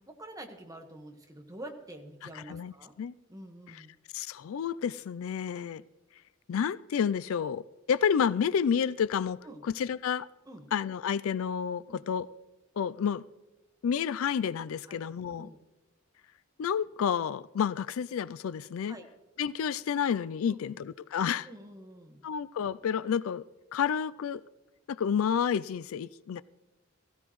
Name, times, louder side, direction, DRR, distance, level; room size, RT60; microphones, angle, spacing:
voice 1, 0.1-2.9 3.3-4.0 9.4-9.6 10.5-10.7 11.9-12.0 14.9-15.0 15.3-15.6 18.8-19.1 20.5-20.8 21.5-22.3, right 1 dB, 15° right, 1.4 m, -47 dB
voice 2, 2.3-3.1 3.7-3.8 4.1-5.8 6.5-7.6 7.9-10.3 10.7-12.3 12.8-13.2 13.8-15.5 16.6-19.0 19.4-21.5 22.2-23.4 23.7-24.4 24.9-26.4, left 7 dB, 80° left, 0.4 m, -30 dB
17.0 x 15.5 x 3.1 m
head